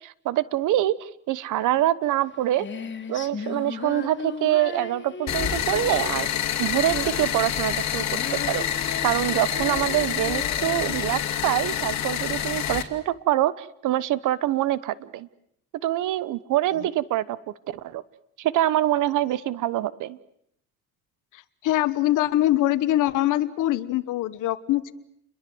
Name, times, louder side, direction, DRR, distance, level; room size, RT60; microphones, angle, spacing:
voice 1, 0.0-2.7 3.1-8.6 9.0-15.3 15.8-17.4 17.7-18.0 18.4-20.2, right 13 dB, 85° right, 19 dB, 1.1 m, -25 dB
Female singing, 2.1-13.0, left 5 dB, 40° left, 2.9 m, -37 dB
sound 1, 5.3-12.8, left 10 dB, 65° left, 2.8 m, -27 dB
voice 2, 21.3-24.9, left 14 dB, 90° left, 12 dB, 1.3 m, -23 dB
29.5 x 22.0 x 7.9 m, 0.73 s
cardioid pair, 90°, 30 cm